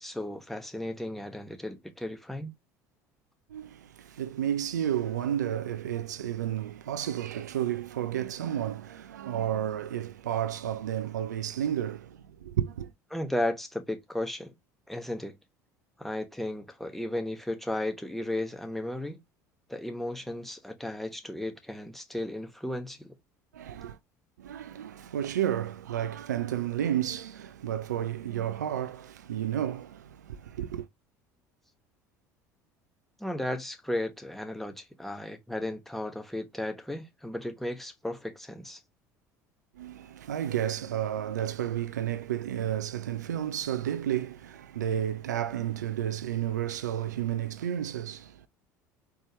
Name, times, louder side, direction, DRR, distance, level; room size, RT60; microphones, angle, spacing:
voice 1, 0.0-2.5 13.1-14.5 14.9-15.3 16.0-19.2 19.7-23.1 33.2-38.8, left 1 dB, 5° left, 1.2 m, -34 dB
voice 2, 3.5-12.9 23.5-24.0 24.4-30.9 39.8-48.5, right 10 dB, 80° right, 0.4 m, -32 dB
4.4 x 3.2 x 2.9 m
figure-of-eight pair, 65°, 9 cm